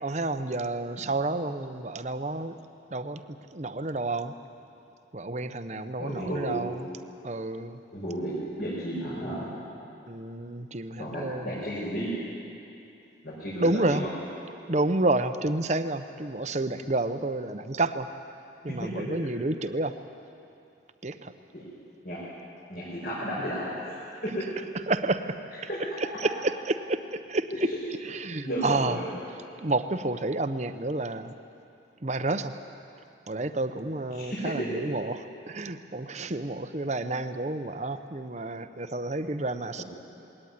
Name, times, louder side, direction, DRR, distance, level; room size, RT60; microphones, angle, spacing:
voice 1, 0.0-2.6 2.9-3.2 3.5-4.4 5.1-6.9 7.2-7.8 10.1-11.6 13.6-14.0 14.7-18.1 18.6-20.0 21.0-21.3 24.9-25.4 26.2-27.5 28.2-29.0 29.6-31.3 32.0-32.6 33.3-35.2 35.4-39.8, right 2 dB, 35° right, 9 dB, 0.8 m, -30 dB
voice 2, 6.0-6.6 7.9-8.3 8.6-9.5 11.0-12.1 13.2-14.1 18.8-18.9 21.5-21.6 22.0-22.2 22.7-24.0 25.7-25.8 28.4-29.1 34.1-34.5, equal, 55° left, -8 dB, 5.4 m, -33 dB
21.0 x 17.5 x 9.6 m, 2.7 s
head